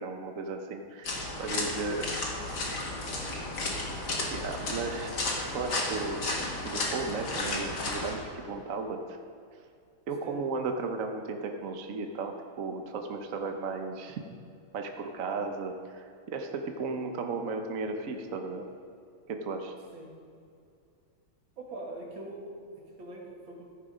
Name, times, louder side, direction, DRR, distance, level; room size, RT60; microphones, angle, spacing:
voice 1, 0.0-2.1 4.3-5.1 5.4-6.4 6.6-9.2 10.1-14.2 14.7-18.7 19.3-19.7, right 4 dB, 50° right, 4 dB, 1.1 m, -35 dB
sound 1, 1.0-8.2, left 2 dB, 55° left, 2.5 m, -33 dB
voice 2, 1.6-2.2 2.8-3.8 10.2-10.4 19.9-20.1 21.6-23.6, right 1 dB, 65° right, -1 dB, 2.9 m, -44 dB
14.5 x 11.0 x 5.2 m, 2.4 s
omnidirectional pair, 2.3 m